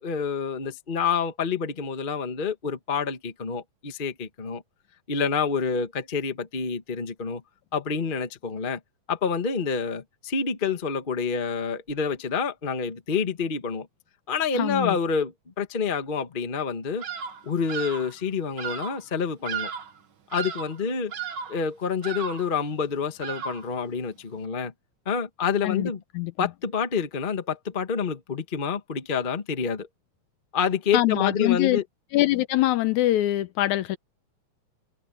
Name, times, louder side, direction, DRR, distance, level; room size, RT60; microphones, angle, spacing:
voice 1, 0.0-4.6 5.1-7.4 7.7-8.8 9.1-13.9 14.3-17.0 17.4-19.7 20.3-21.1 21.5-24.7 25.0-26.0 26.4-29.9 30.5-31.8, left 6 dB, 35° left, 0.8 m, -28 dB
voice 2, 14.5-15.0 25.6-26.5 30.9-31.8 32.1-34.0, left 16 dB, 80° left, 1.9 m, -24 dB
Bird vocalization bird call bird song, 17.0-17.4 17.7-18.1 18.6-19.0 19.4-20.0 20.3-20.8 21.1-21.6 22.0-22.5 23.2-23.7, right 7 dB, 50° right, 1.4 m, -34 dB
omnidirectional pair, 3.7 m